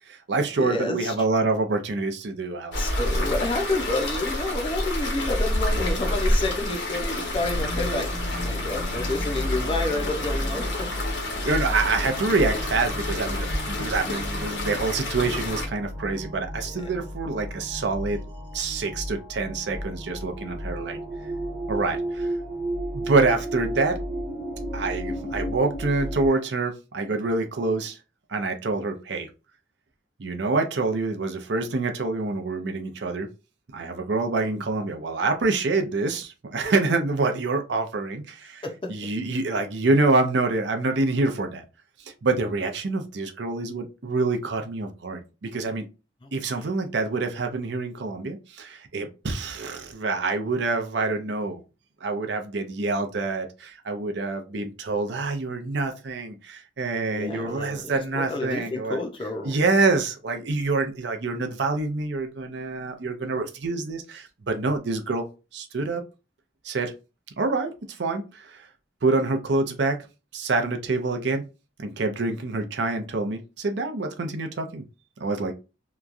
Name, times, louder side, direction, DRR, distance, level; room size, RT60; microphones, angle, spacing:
voice 1, 0.1-3.0 11.4-18.2 18.5-21.0 21.7-22.3 22.9-24.0 24.7-28.0 28.3-29.3 30.2-33.3 33.7-38.6 38.9-41.6 42.2-45.9 46.3-51.6 52.0-59.0 59.4-65.3 65.5-66.0 66.6-66.9 67.4-68.7 69.0-70.0 70.3-71.4 71.8-74.8 75.2-75.5, right 3 dB, 70° right, 0.5 m, -26 dB
voice 2, 0.6-1.1 2.8-10.9 16.7-16.8 38.6-38.9 46.2-46.7 57.1-59.6, left 2 dB, 25° left, 0.5 m, -30 dB
sound 1, 2.7-15.7, left 1 dB, 75° left, 0.9 m, -29 dB
sound 2, 7.3-26.3, equal, 25° right, 1.2 m, -32 dB
2.9 x 2.3 x 2.4 m
head